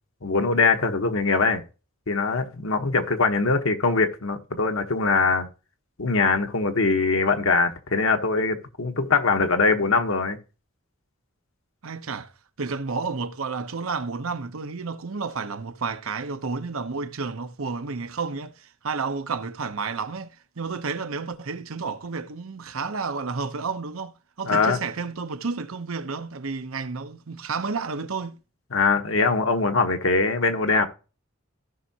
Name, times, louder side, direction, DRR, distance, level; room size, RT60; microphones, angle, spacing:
voice 1, 0.2-1.6 2.1-5.5 6.0-10.4 24.5-24.8 28.7-30.9, left 4 dB, 70° left, 1.2 m, -22 dB
voice 2, 11.8-12.3 12.6-28.4, right 4 dB, 80° right, 0.8 m, -31 dB
15.5 x 5.5 x 2.8 m
head